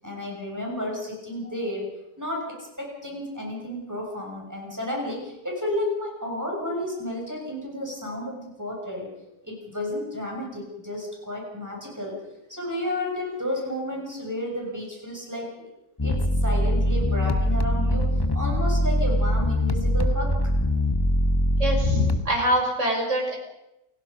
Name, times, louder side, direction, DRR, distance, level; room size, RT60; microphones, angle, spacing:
voice 1, 0.0-1.9 2.2-9.1 9.4-12.2 12.5-15.7 16.0-20.3, left 1 dB, 10° right, -2 dB, 6.8 m, -32 dB
sound 1, 16.0-22.2, left 1 dB, 15° left, 1.1 m, -22 dB
voice 2, 21.6-23.4, right 1 dB, 50° right, 1 dB, 5.7 m, -24 dB
29.0 x 17.0 x 5.4 m, 0.89 s
omnidirectional pair, 1.7 m